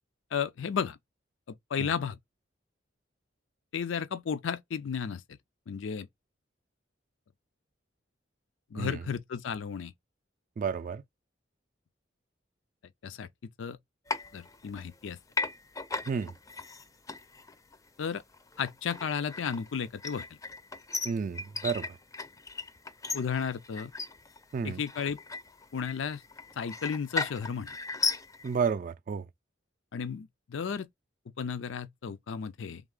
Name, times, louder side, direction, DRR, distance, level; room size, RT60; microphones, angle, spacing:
voice 1, 0.3-1.0 1.5-2.2 3.7-5.2 5.7-6.1 8.7-9.9 13.0-13.3 13.6-13.8 14.3-15.2 18.0-18.2 18.6-20.3 23.1-23.9 24.6-25.2 25.7-26.2 26.6-27.8 29.9-30.9 31.4-32.8, left 6 dB, 90° left, 0.4 m, -33 dB
voice 2, 10.6-11.0 16.1-16.3 21.0-21.9 24.5-24.8 28.4-29.3, right 6 dB, 45° right, 0.3 m, -31 dB
sound 1, 14.1-15.0 15.3-28.7, left 4 dB, 20° left, 0.4 m, -37 dB
3.6 x 3.2 x 3.7 m
head